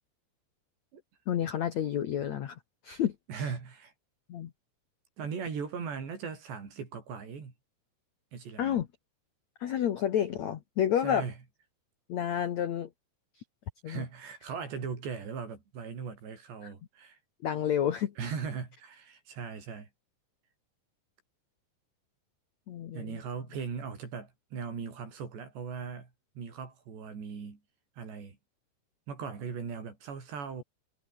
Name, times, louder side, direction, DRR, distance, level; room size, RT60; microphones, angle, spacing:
voice 1, 1.3-2.6 2.8-3.4 4.3-4.5 8.6-8.9 9.6-11.3 12.1-12.9 13.8-14.0 16.6-16.7 17.4-18.1 22.7-23.2, left 10 dB, 75° left, 1.6 m, -30 dB
voice 2, 3.3-3.9 5.2-7.5 8.3-8.8 11.0-11.3 13.9-17.2 18.2-19.9 22.9-26.1 26.4-27.6 28.0-28.4 29.1-30.6, right 6 dB, 70° right, 7.4 m, -39 dB
omnidirectional pair, 5.3 m